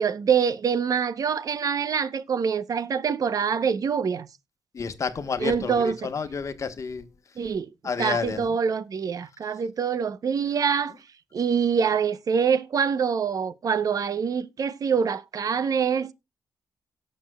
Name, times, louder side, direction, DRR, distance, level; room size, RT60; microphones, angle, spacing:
voice 1, 0.0-4.3 5.4-6.0 7.4-7.7 8.0-11.0 11.3-16.1, right 6 dB, 50° right, 0.7 m, -25 dB
voice 2, 4.7-7.1 7.8-8.6, left 5 dB, 45° left, 1.2 m, -30 dB
17.5 x 6.6 x 2.2 m
cardioid pair, 110°, 8 cm